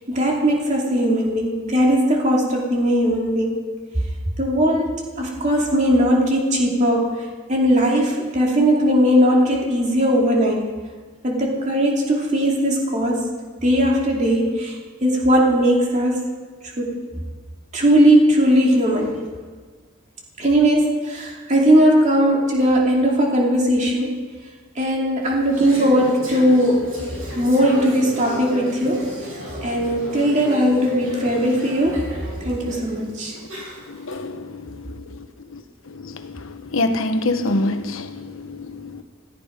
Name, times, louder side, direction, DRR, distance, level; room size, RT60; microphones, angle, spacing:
voice 1, 0.1-3.6 4.4-7.1 7.5-10.6 11.2-13.2 13.5-16.2 16.6-17.0 17.7-19.2 20.4-24.2 24.8-26.8 27.3-29.1 29.6-32.1 32.4-33.4, equal, 35° right, 2.6 m, -18 dB
Conversation / Chatter, 25.2-34.1, equal, 80° right, 6.0 m, -34 dB
voice 2, 34.0-34.7 35.5-35.6 35.9-36.4 36.7-39.0, left 2 dB, 75° left, 1.1 m, -25 dB
17.0 x 14.5 x 5.2 m
head